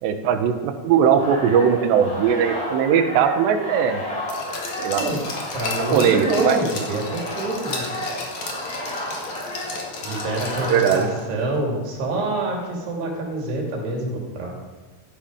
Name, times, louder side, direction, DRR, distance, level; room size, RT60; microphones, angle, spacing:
voice 1, 0.0-4.0 4.8-5.0 5.9-6.6 10.7-11.1, right 8 dB, 90° right, 7 dB, 3.3 m, -19 dB
sound 1, 1.2-11.6, left 1 dB, 30° left, 7.1 m, -32 dB
Glass, 4.3-11.2 11.5-11.6, left 3 dB, 50° left, 3.1 m, -34 dB
voice 2, 4.8-5.2 5.5-8.0 10.0-14.5, right 2 dB, 70° right, -1 dB, 4.9 m, -26 dB
16.0 x 13.0 x 5.2 m, 1.3 s
omnidirectional pair, 4.9 m